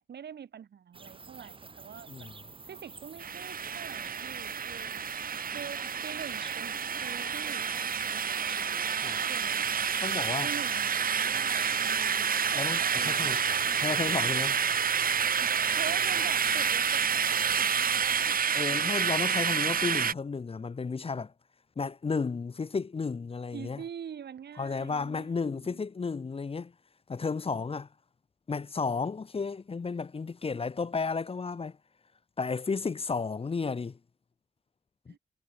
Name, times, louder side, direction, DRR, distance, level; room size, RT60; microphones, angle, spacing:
voice 1, 0.0-2.3 2.7-5.1 5.4-7.7 9.3-9.6 10.4-14.3 15.4-18.8 23.5-25.8 35.1-35.2, right 8 dB, 85° right, 7.2 m, -45 dB
sound 1, 0.9-18.4, right 4 dB, 30° right, 1.9 m, -48 dB
sound 2, 3.2-20.1, right 7 dB, 60° right, 1.6 m, -29 dB
voice 2, 10.0-10.5 12.5-13.4 13.8-14.6 18.5-21.3 21.8-23.8 24.6-26.7 27.1-27.9 28.5-31.8 32.4-34.0 35.1-35.2, left 4 dB, 35° left, 1.2 m, -33 dB
wide cardioid pair, 130°, 17 cm